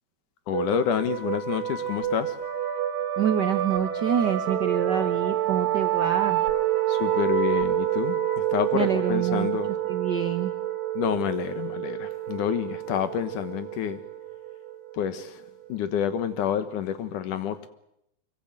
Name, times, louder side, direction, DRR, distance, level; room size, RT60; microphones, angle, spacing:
voice 1, 0.5-2.3 6.9-9.7 10.9-14.0 14.9-15.4 15.7-17.6, left 9 dB, 70° left, 2.7 m, -28 dB
sound 1, 0.5-15.9, right 11 dB, 85° right, 3.4 m, -28 dB
voice 2, 3.2-6.5 8.7-9.5 9.9-10.5, right 8 dB, 70° right, 1.0 m, -26 dB
24.0 x 23.5 x 7.6 m
omnidirectional pair, 3.9 m